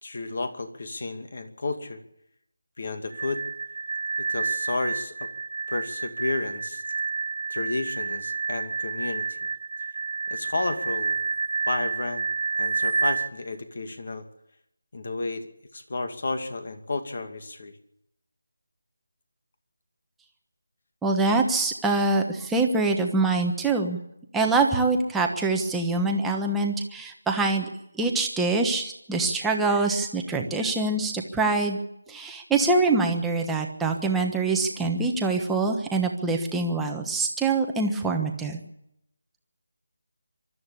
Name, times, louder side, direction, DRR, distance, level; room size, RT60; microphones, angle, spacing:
voice 1, 0.0-2.0 2.8-3.5 4.2-5.3 5.7-6.8 7.5-9.4 10.3-11.2 11.7-12.3 12.6-14.2 14.9-15.5 15.7-17.8, left 3 dB, 50° left, 7 dB, 2.4 m, -32 dB
sound 1, 3.1-13.3, right 5 dB, 45° right, 1.2 m, -29 dB
voice 2, 21.0-24.0 24.3-27.7 27.9-31.8 32.1-38.6, right 3 dB, 5° right, 1 dB, 1.2 m, -24 dB
24.0 x 13.0 x 8.6 m, 0.80 s
figure-of-eight pair, 175°, 0 cm